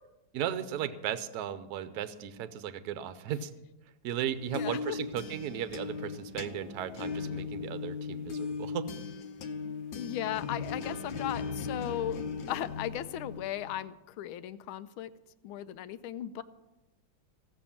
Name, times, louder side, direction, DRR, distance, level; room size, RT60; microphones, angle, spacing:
voice 1, 0.3-3.5 4.0-8.9, right 10 dB, 60° right, 12 dB, 1.1 m, -36 dB
sound 1, 4.2-13.9, left 5 dB, 70° left, 1.5 m, -38 dB
voice 2, 4.5-5.0 9.9-12.2 12.5-15.1 15.4-16.4, left 11 dB, 85° left, 14 dB, 1.5 m, -36 dB
16.0 x 6.9 x 7.3 m, 0.99 s
omnidirectional pair, 2.2 m